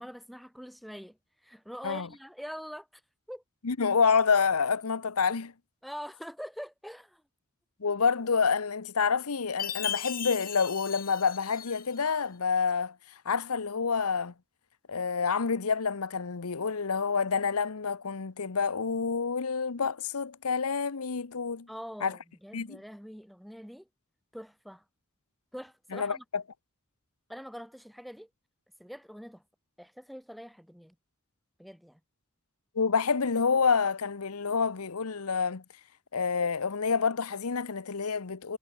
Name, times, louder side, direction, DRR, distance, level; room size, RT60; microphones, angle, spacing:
voice 1, 0.0-3.0 3.3-3.4 5.8-7.2 21.7-23.9 24.3-24.8 25.5-26.2 27.3-28.3 28.8-29.4 29.8-31.0 31.6-32.0, equal, ahead, 6.4 m, -44 dB
voice 2, 3.6-5.5 7.8-12.9 13.2-14.3 14.9-21.7 22.0-22.1 22.5-22.8 25.9-26.4 32.7-35.6 36.1-38.6, left 5 dB, 80° left, 0.9 m, -28 dB
Chime, 9.6-12.1, left 10 dB, 45° left, 2.8 m, -37 dB
head